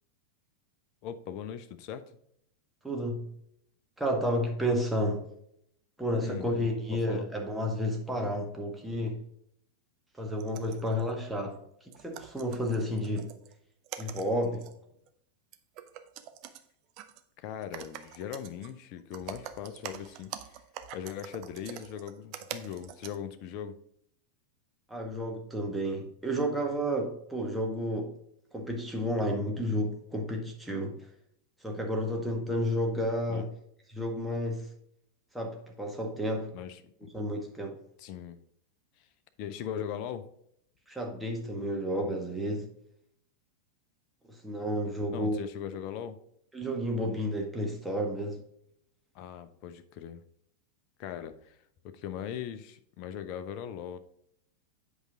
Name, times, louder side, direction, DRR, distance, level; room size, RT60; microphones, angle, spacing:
voice 1, 1.0-2.2 6.2-6.4 7.1-7.3 17.4-20.6 20.9-23.8 33.3-33.4 36.5-37.1 38.0-38.4 39.0-39.1 39.4-40.3 45.1-46.2 49.1-50.2 51.0-51.6 51.8-54.0, left 9 dB, 40° left, 10 dB, 0.7 m, -39 dB
voice 2, 2.8-3.2 4.0-5.2 6.0-9.2 10.2-11.6 12.0-13.3 14.0-14.7 24.9-28.1 28.5-30.9 31.6-33.5 33.9-34.7 35.3-36.5 37.1-37.7 40.9-42.7 44.3-45.4 46.5-48.4, equal, 5° right, 1 dB, 1.7 m, -31 dB
sound 1, 10.2-11.1 11.5-11.6 11.9-13.5 13.8-14.7 15.1-15.2 15.5-16.6 17.0-17.2 17.6-18.7 19.0-23.2, right 10 dB, 40° right, 0.7 m, -45 dB
8.1 x 5.2 x 3.7 m, 0.71 s
figure-of-eight pair, 90°, 0 cm